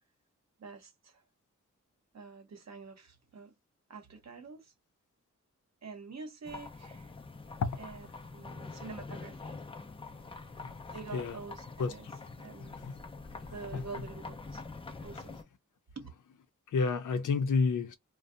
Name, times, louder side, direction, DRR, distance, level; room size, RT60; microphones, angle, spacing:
voice 1, 0.6-1.2 2.1-3.5 3.9-4.7 5.8-7.1 7.8-8.1 8.3-9.6 10.9-12.1 12.4-12.8 13.5-14.6 15.0-15.4 16.0-16.1, right 4 dB, 60° right, 0.8 m, -46 dB
sound 1, 6.4-15.4, left 3 dB, 20° left, 0.4 m, -45 dB
voice 2, 10.6-11.4 11.8-12.2 12.6-12.9 13.4-13.9 16.7-18.0, left 4 dB, 80° left, 0.6 m, -32 dB
2.6 x 2.1 x 2.4 m
wide cardioid pair, 105°, 31 cm